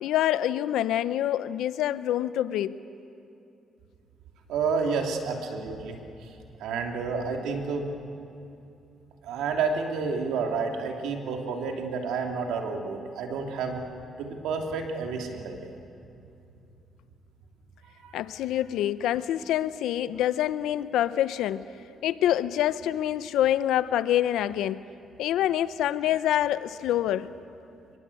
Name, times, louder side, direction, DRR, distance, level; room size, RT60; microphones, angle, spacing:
voice 1, 0.0-2.8 18.1-21.7 22.0-24.8 25.2-27.3, left 12 dB, 85° left, 15 dB, 0.7 m, -26 dB
voice 2, 4.5-6.0 6.6-7.9 9.2-13.8 14.2-15.7 18.0-18.1, right 5 dB, 90° right, 3 dB, 2.8 m, -30 dB
24.5 x 22.5 x 8.4 m, 2.7 s
cardioid pair, 90°, 0 cm